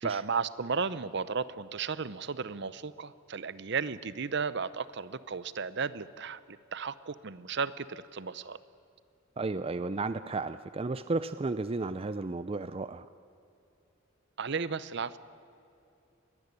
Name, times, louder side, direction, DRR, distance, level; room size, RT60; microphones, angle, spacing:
voice 1, 0.0-8.6 14.4-15.2, right 5 dB, 55° right, 16 dB, 0.7 m, -34 dB
voice 2, 9.4-13.1, right 3 dB, 30° right, 13 dB, 0.4 m, -33 dB
22.0 x 18.5 x 9.7 m, 2.7 s
head